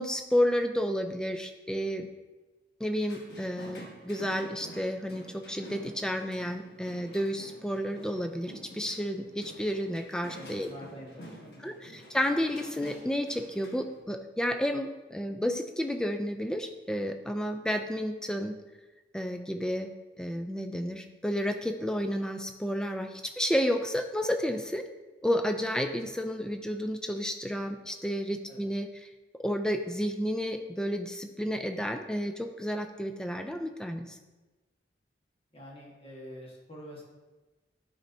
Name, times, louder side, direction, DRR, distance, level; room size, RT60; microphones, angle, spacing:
voice 1, 0.0-2.1 2.8-10.7 11.6-18.6 19.1-24.9 25.2-29.1 29.4-34.2, equal, 5° left, 6 dB, 0.3 m, -31 dB
sound 1, 3.0-14.0, equal, 60° left, 1.3 m, -49 dB
voice 2, 10.3-12.0 28.5-28.7 35.5-37.0, equal, 30° left, -3 dB, 1.4 m, -47 dB
10.0 x 4.2 x 2.7 m, 1.2 s
head